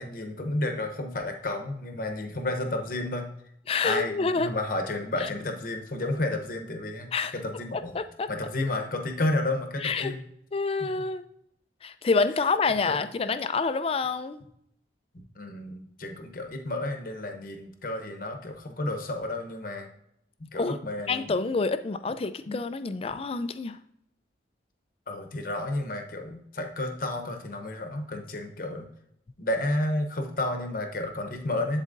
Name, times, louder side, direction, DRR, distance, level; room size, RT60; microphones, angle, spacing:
voice 1, 0.0-3.3 3.8-8.0 8.3-10.2 10.8-10.9 12.8-13.0 15.3-19.9 20.4-21.4 22.5-22.6 25.1-28.9 29.4-31.8, left 2 dB, 50° left, 5 dB, 0.9 m, -31 dB
voice 2, 3.7-4.5 7.1-7.3 7.9-8.3 9.8-10.1 10.5-11.2 11.8-14.4 20.5-20.8 21.1-23.8, left 4 dB, 30° left, 11 dB, 0.3 m, -27 dB
11.0 x 4.1 x 2.6 m, 0.75 s
head